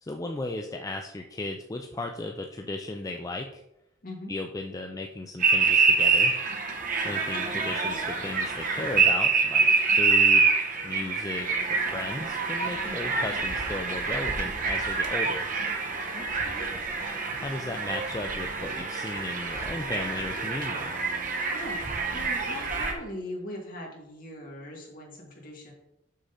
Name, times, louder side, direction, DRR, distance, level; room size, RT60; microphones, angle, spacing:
voice 1, 0.0-3.6 4.3-6.3 7.0-10.6 10.8-15.4 17.4-21.0, left 2 dB, 20° left, 3 dB, 0.4 m, -35 dB
voice 2, 4.0-4.3 6.9-7.2 12.8-13.0 16.1-16.7 21.5-25.7, left 1 dB, 50° left, -1 dB, 2.1 m, -41 dB
sound 1, 5.4-22.9, right 4 dB, 50° right, 1.0 m, -26 dB
6.5 x 6.1 x 4.1 m, 0.85 s
head